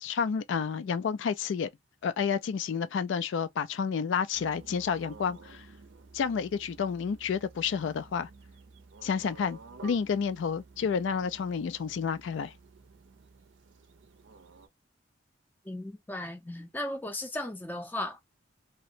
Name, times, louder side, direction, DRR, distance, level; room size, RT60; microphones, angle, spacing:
voice 1, 0.0-1.7 2.0-5.7 6.1-8.3 9.0-12.5, left 6 dB, 70° left, 0.3 m, -30 dB
sound 1, 4.3-14.7, right 4 dB, 75° right, 0.5 m, -52 dB
voice 2, 15.7-18.2, left 1 dB, 10° left, 0.5 m, -36 dB
2.9 x 2.1 x 2.5 m
head